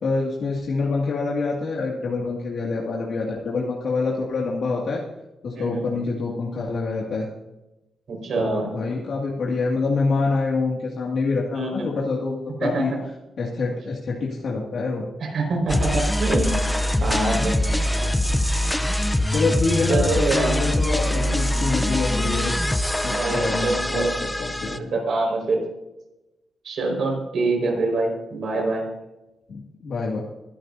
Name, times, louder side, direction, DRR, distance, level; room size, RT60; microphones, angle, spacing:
voice 1, 0.0-5.0 5.4-7.3 8.3-12.9 13.4-15.0 17.0-17.6 19.3-22.5 23.0-24.1 24.4-25.0 29.5-30.2, left 3 dB, 60° left, -4 dB, 2.2 m, -26 dB
voice 2, 5.5-5.9 8.1-8.8 11.5-11.9 12.6-12.8 15.2-16.6 17.0-17.6 17.9-18.1 19.9-20.6 21.1-21.6 23.1-24.1 24.6-25.6 26.6-28.8, right 3 dB, 60° right, 1 dB, 5.1 m, -25 dB
sound 1, 15.7-24.8, left 1 dB, 10° left, 0.6 m, -23 dB
23.5 x 12.0 x 2.7 m, 0.98 s
wide cardioid pair, 160°, 0 cm